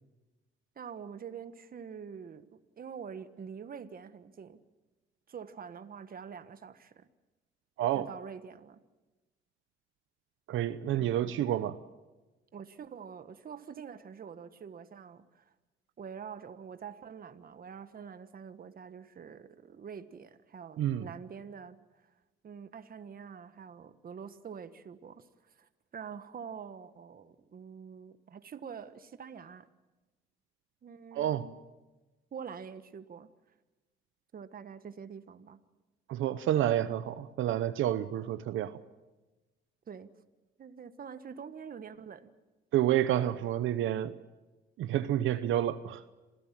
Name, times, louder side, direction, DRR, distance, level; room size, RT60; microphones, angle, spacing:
voice 1, 0.7-4.6 5.3-7.1 7.9-8.8 10.9-11.7 12.5-15.5 16.0-22.0 22.4-29.7 30.8-31.6 32.3-33.3 34.3-35.6 39.9-40.1 40.6-42.3, right 7 dB, 45° right, 1.4 m, -46 dB
voice 2, 7.8-8.1 10.5-11.8 20.8-21.1 31.1-31.5 36.1-38.8 42.7-44.2 44.8-46.0, right 12 dB, 80° right, 0.9 m, -29 dB
27.0 x 16.5 x 7.6 m
cardioid pair, 90°, 20 cm